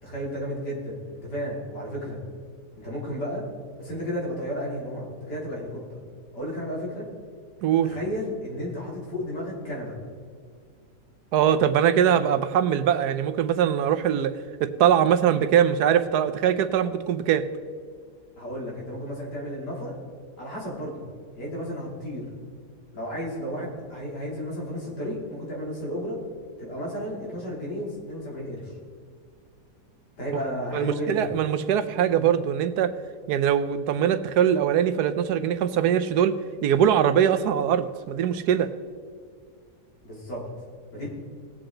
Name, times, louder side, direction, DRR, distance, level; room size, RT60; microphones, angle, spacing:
voice 1, 0.0-2.2 2.7-3.4 3.8-6.0 6.3-7.1 7.8-10.0 18.4-20.0 20.4-21.0 21.3-22.3 22.9-26.2 26.6-28.8 30.2-31.3 40.0-40.5 40.9-41.1, equal, 80° left, -4 dB, 3.7 m, -33 dB
voice 2, 7.6-7.9 11.3-14.3 14.6-17.5 30.7-32.9 33.3-36.3 36.6-38.7, right 9 dB, 75° right, 12 dB, 1.2 m, -22 dB
19.0 x 7.9 x 3.8 m, 2.1 s
omnidirectional pair, 1.8 m